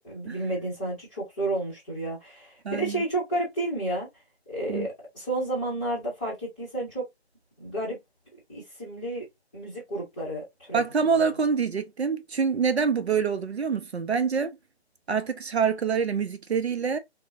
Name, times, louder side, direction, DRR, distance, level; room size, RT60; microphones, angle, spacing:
voice 1, 0.0-4.1 4.5-7.0 7.6-8.0 8.5-9.3 9.5-10.8, right 1 dB, 10° left, 0.6 m, -31 dB
voice 2, 2.6-3.0 4.7-4.9 10.7-14.6 15.1-17.0, right 6 dB, 70° right, 0.6 m, -26 dB
3.6 x 2.0 x 2.7 m
figure-of-eight pair, 145°, 33 cm